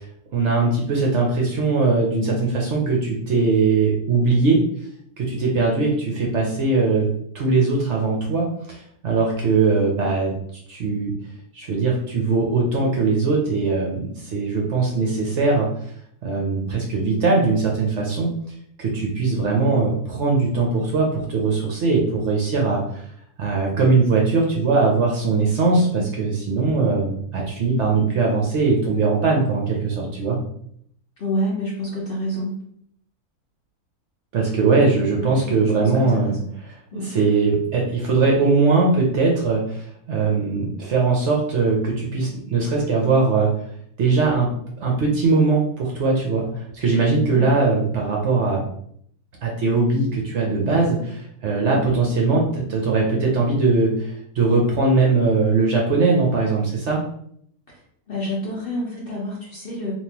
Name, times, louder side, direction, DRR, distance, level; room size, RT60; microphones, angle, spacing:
voice 1, 0.3-4.6 5.2-10.3 10.7-11.2 11.5-15.7 16.2-18.3 18.8-23.0 23.4-30.4 34.3-43.5 44.0-44.5 44.8-48.6 49.4-57.0, right 3 dB, 60° right, -1 dB, 0.8 m, -20 dB
voice 2, 31.2-32.6 35.2-35.9 36.2-36.4 36.9-37.1 47.3-47.6 51.6-51.8 58.1-59.9, equal, 50° left, -4 dB, 0.7 m, -28 dB
3.6 x 2.5 x 2.8 m, 0.68 s
omnidirectional pair, 1.6 m